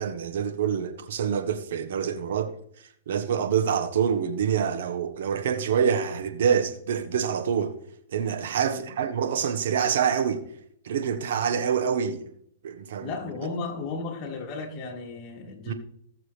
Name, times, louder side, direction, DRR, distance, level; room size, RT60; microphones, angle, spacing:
voice 1, 0.0-2.5 3.1-7.8 8.1-10.5 10.8-12.2 12.6-13.1 15.7-15.8, right 7 dB, 70° right, 1.3 m, -26 dB
voice 2, 8.7-9.0 13.0-15.7, left 4 dB, 35° left, 3.0 m, -35 dB
19.5 x 6.6 x 3.4 m
hypercardioid pair, 130°, 0 cm